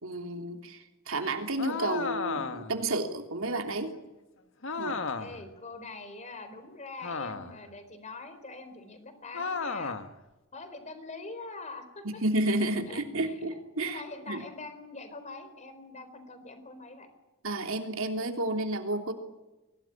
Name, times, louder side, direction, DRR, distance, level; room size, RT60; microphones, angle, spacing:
voice 1, 0.0-4.0 4.8-5.0 12.2-14.0 14.3-14.4 17.4-19.1, right 2 dB, 65° right, 5 dB, 3.2 m, -31 dB
sound 1, 1.6-2.8 4.6-5.5 7.0-7.7 9.3-10.1, left 4 dB, 65° left, 1.7 m, -34 dB
voice 2, 5.2-10.0 10.5-12.2 12.9-13.4 13.9-17.1, left 3 dB, 35° left, 9 dB, 4.2 m, -44 dB
24.0 x 17.5 x 9.8 m, 1.0 s
head